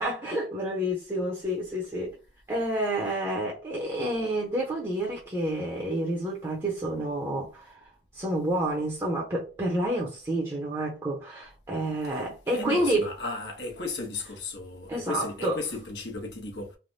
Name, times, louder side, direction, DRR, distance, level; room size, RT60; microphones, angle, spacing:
voice 1, 0.0-2.2 2.5-13.1 14.9-15.6, right 1 dB, 20° right, 0.7 m, -29 dB
voice 2, 12.1-16.8, left 3 dB, 80° left, 1.0 m, -35 dB
3.3 x 2.2 x 2.6 m
head